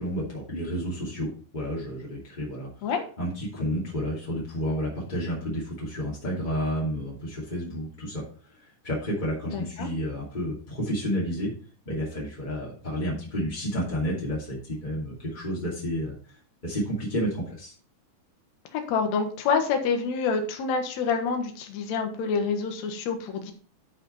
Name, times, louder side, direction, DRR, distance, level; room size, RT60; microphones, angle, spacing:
voice 1, 0.0-2.7 3.2-8.2 8.6-11.5 11.8-16.4 16.6-17.7, equal, 20° left, -5 dB, 1.4 m, -31 dB
voice 2, 9.5-9.9 18.7-23.5, left 5 dB, 60° left, 4 dB, 2.0 m, -27 dB
11.0 x 5.2 x 4.2 m, 0.43 s
omnidirectional pair, 4.7 m